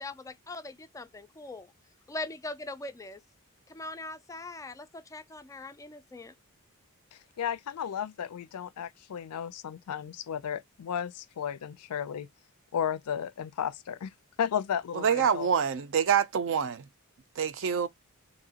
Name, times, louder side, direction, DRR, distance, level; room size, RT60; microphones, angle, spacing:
voice 1, 0.0-1.7 2.1-3.2 3.7-6.3, left 2 dB, 15° left, 0.3 m, -41 dB
voice 2, 7.4-12.3 12.7-14.1 14.4-15.5, left 8 dB, 80° left, 0.4 m, -33 dB
voice 3, 14.9-16.9 17.4-17.9, right 7 dB, 60° right, 0.5 m, -26 dB
2.9 x 2.7 x 2.7 m
head